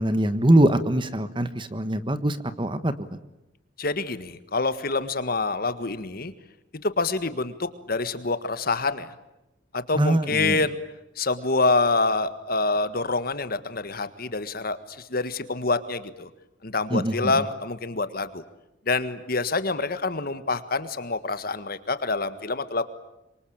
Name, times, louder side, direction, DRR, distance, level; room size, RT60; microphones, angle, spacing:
voice 1, 0.0-3.2 9.9-10.6 16.9-17.4, right 1 dB, 25° right, 12 dB, 1.4 m, -23 dB
voice 2, 3.8-6.3 6.8-9.1 9.7-10.8 11.2-14.8 15.1-16.3 16.6-18.4 18.9-22.8, left 3 dB, 55° left, 12 dB, 1.7 m, -26 dB
26.5 x 24.0 x 8.8 m, 0.93 s
head